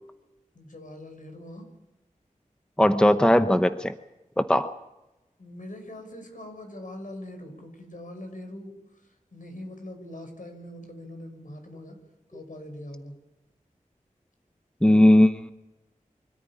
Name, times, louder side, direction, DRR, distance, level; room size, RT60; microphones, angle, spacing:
voice 1, 0.5-1.7 5.4-12.0 12.3-13.2, left 1 dB, 75° left, 5 dB, 5.9 m, -42 dB
voice 2, 2.8-3.9 4.4-4.7 14.8-15.5, left 1 dB, 5° left, 9 dB, 0.9 m, -18 dB
25.0 x 13.5 x 9.9 m, 0.99 s
wide cardioid pair, 60°, 14 cm